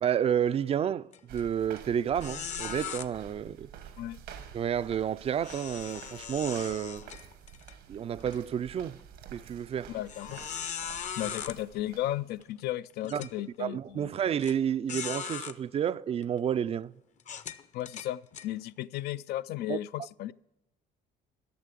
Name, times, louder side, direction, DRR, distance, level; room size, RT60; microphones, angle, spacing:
voice 1, 0.0-3.7 4.5-7.0 7.9-9.0 9.3-10.0 13.1-13.2 13.6-16.9 19.7-19.8, right 9 dB, 35° right, 0.3 m, -30 dB
sound 1, 1.1-1.4 1.8-1.9 2.2-3.1 5.4-7.7 8.2-8.4 9.0-9.1 10.1-11.6 12.4-12.5 13.0-13.3 14.4-14.5 14.9-15.6 16.2-16.4 17.2-18.5, left 7 dB, 45° left, 0.7 m, -39 dB
sound 2, 1.3-12.4, right 8 dB, 85° right, 1.5 m, -49 dB
voice 2, 9.9-10.4 11.2-14.1 17.7-20.3, left 14 dB, 70° left, 0.4 m, -35 dB
12.5 x 6.6 x 8.3 m
cardioid pair, 110°, 17 cm